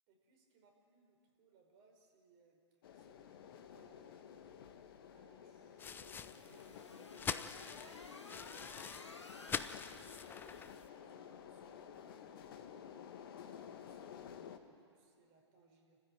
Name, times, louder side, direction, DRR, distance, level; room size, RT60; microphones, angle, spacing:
voice 1, 0.1-2.6 2.9-4.2 5.1-8.2 9.9-12.4 12.8-16.0, right 4 dB, 40° right, 2 dB, 5.3 m, -69 dB
sound 1, 2.8-14.6, left 8 dB, 55° left, 1.7 m, -53 dB
sound 2, 5.8-10.9, left 7 dB, 15° left, 0.6 m, -45 dB
sound 3, 5.9-10.8, left 3 dB, 80° left, 2.0 m, -56 dB
29.0 x 15.0 x 9.0 m, 2.3 s
figure-of-eight pair, 110°, 15 cm